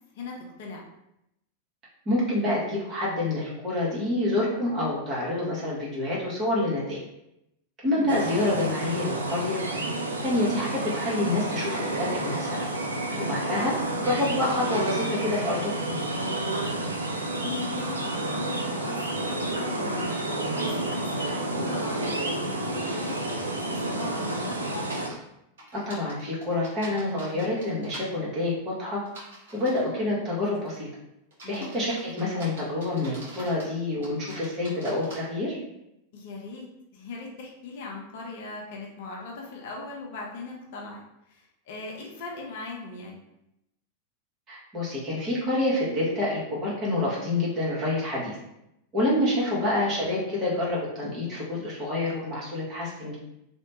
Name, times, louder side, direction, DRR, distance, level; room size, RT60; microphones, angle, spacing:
voice 1, 0.1-0.8 7.9-8.1 13.1-13.4 17.4-20.1 20.5-24.6 31.4-31.8 36.1-36.7 36.9-41.0 41.3-43.2 49.3-49.6, left 3 dB, 55° left, -1 dB, 0.6 m, -39 dB
voice 2, 2.0-7.0 7.8-9.6 10.2-12.6 13.2-15.7 25.7-29.0 29.5-30.9 31.5-35.6 44.5-48.4 48.9-53.2, left 1 dB, 30° right, -6 dB, 1.2 m, -27 dB
sound 1, 8.1-25.1, right 2 dB, 75° right, 0.3 m, -30 dB
sound 2, 24.9-25.2 25.6-28.1 29.1-29.9 30.5-30.8 31.3-33.7 34.0-35.2, right 1 dB, 60° right, 1.1 m, -45 dB
2.8 x 2.1 x 2.8 m, 0.84 s
figure-of-eight pair, 90°, 0 cm